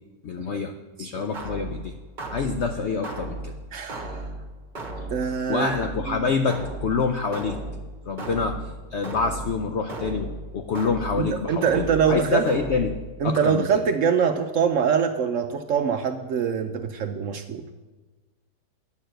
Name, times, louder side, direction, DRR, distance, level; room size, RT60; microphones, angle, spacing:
voice 1, 0.2-0.7 1.0-1.9 2.3-3.5 5.5-7.6 8.0-8.6 8.9-13.0 13.2-13.8, left 5 dB, 70° left, 7 dB, 0.6 m, -26 dB
sound 1, 1.3-13.3, right 2 dB, 30° right, 1.2 m, -36 dB
voice 2, 3.7-4.3 5.1-5.8 11.2-12.5 13.2-17.6, right 7 dB, 65° right, 7 dB, 0.8 m, -24 dB
9.4 x 6.6 x 7.7 m, 1.2 s
omnidirectional pair, 1.8 m